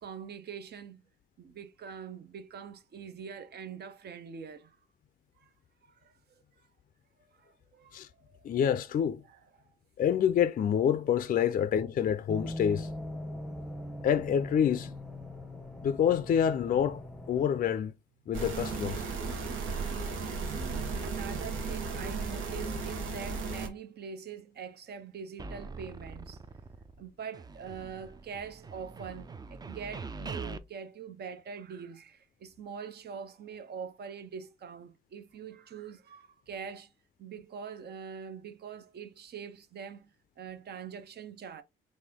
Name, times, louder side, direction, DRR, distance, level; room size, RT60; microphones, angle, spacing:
voice 1, 0.0-1.0 1.4-4.8 5.4-5.5 6.0-6.1 7.3-8.1 9.3-9.4 21.0-26.4 27.0-36.9 37.2-40.1 40.4-41.6, right 6 dB, 55° right, 0.7 m, -44 dB
voice 2, 8.4-9.2 10.0-12.9 14.0-14.9 15.8-17.9 18.3-19.0, left 8 dB, 45° left, 0.4 m, -27 dB
sound 1, 12.3-17.5, left 1 dB, ahead, 0.8 m, -41 dB
sound 2, 18.3-23.7, right 4 dB, 85° right, 1.1 m, -35 dB
sound 3, 25.4-27.1 27.3-30.6, right 4 dB, 20° right, 0.4 m, -43 dB
4.2 x 2.6 x 3.5 m
cardioid pair, 90°, 20 cm